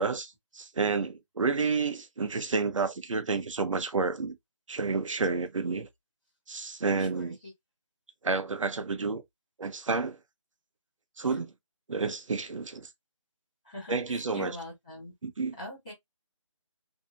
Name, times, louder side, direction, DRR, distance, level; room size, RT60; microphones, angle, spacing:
voice 1, 0.0-4.4 4.7-5.9 6.5-7.4 8.2-9.2 9.6-10.2 11.2-11.5 11.9-12.9 13.9-14.6 15.2-15.5, right 4 dB, 80° right, 0.7 m, -30 dB
voice 2, 7.0-7.3 11.2-11.4 13.6-15.1 15.6-15.9, left 1 dB, 10° left, 0.7 m, -42 dB
2.7 x 2.5 x 2.4 m
figure-of-eight pair, 175°, 16 cm